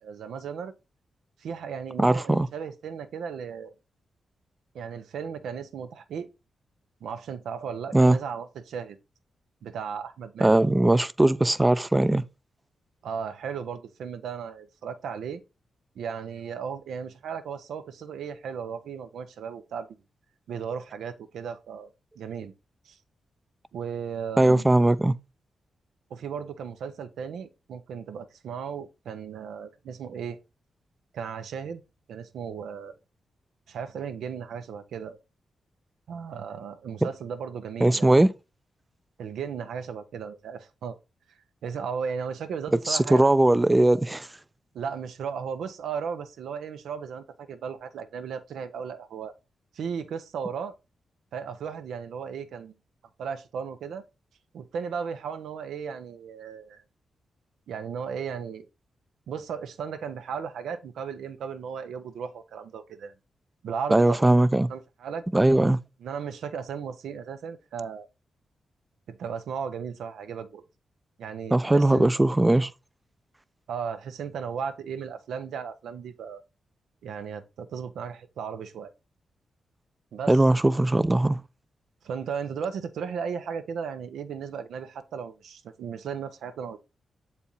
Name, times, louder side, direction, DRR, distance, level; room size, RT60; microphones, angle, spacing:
voice 1, 0.0-0.7 1.4-3.7 4.7-6.3 7.0-9.0 9.6-10.6 13.0-15.4 16.0-20.0 20.5-21.9 22.2-22.5 22.9-23.0 23.7-24.6 26.1-30.4 31.1-31.8 32.1-33.0 33.7-35.2 36.1-38.1 39.2-41.0 41.6-43.3 44.7-49.3 49.7-50.7 51.3-52.7 53.2-54.0 54.5-56.8 57.7-58.7 59.3-63.1 63.6-64.3 64.7-65.2 66.0-68.1 69.1-70.6 71.2-72.1 73.7-76.4 77.0-78.9 80.1-80.4 82.0-86.8, right 6 dB, 85° right, 0.7 m, -35 dB
voice 2, 2.0-2.5 7.9-8.2 10.4-12.2 24.4-25.2 37.8-38.3 42.9-44.3 63.9-64.7 65.3-65.8 71.5-72.7 80.3-81.4, right 1 dB, 20° right, 0.5 m, -20 dB
7.3 x 4.3 x 3.9 m
supercardioid pair, 55°, 0 cm